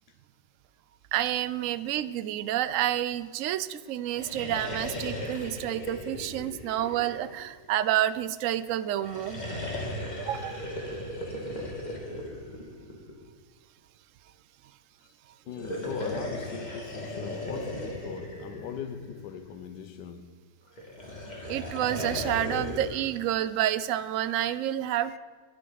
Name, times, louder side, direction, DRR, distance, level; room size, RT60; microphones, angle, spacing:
voice 1, 1.1-9.4 10.2-10.6 21.5-25.2, right 12 dB, 75° right, 0.7 m, -29 dB
sound 1, 4.0-7.6 8.9-13.3 15.5-19.5 20.8-23.0, left 1 dB, 25° left, 2.1 m, -36 dB
voice 2, 15.5-20.4 25.1-25.2, left 8 dB, 75° left, 1.4 m, -40 dB
21.0 x 10.5 x 4.0 m
omnidirectional pair, 1.9 m